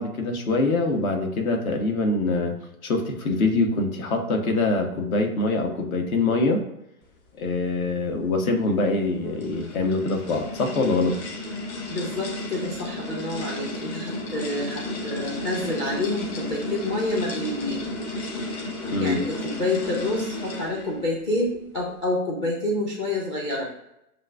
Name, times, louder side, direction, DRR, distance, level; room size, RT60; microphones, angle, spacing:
voice 1, 0.0-2.6 2.8-6.6 7.4-11.2 18.9-19.2, left 3 dB, 65° left, 4 dB, 1.0 m, -24 dB
sound 1, 8.8-21.0, left 1 dB, 45° left, 1.4 m, -33 dB
voice 2, 11.9-17.9 19.0-23.7, left 1 dB, 20° left, -3 dB, 0.4 m, -28 dB
7.4 x 2.6 x 2.2 m, 0.83 s
figure-of-eight pair, 110°, 46 cm